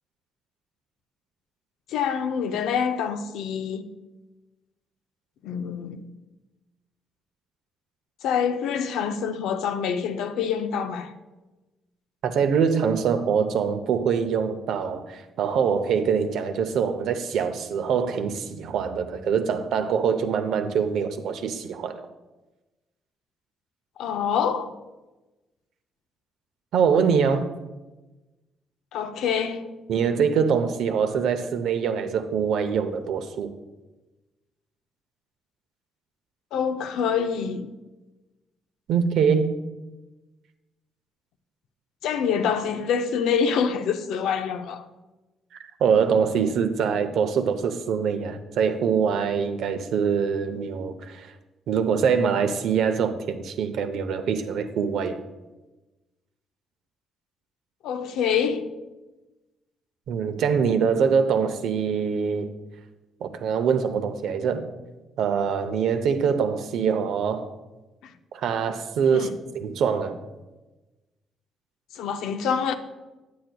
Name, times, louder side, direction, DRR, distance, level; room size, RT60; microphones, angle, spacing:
voice 1, 1.9-3.9 5.4-6.0 8.2-11.1 24.0-24.7 28.9-29.7 36.5-37.7 42.0-44.9 57.8-58.7 68.0-68.1 69.1-69.3 71.9-72.7, left 7 dB, 85° left, 0.5 m, -26 dB
voice 2, 12.2-22.0 26.7-27.5 29.9-33.5 38.9-39.6 45.5-51.3 51.7-55.2 60.1-62.5 63.2-64.7 65.2-67.5 68.3-69.3 69.5-70.2, right 6 dB, 80° right, 0.6 m, -24 dB
9.2 x 7.7 x 2.2 m
cardioid pair, 90°, 0 cm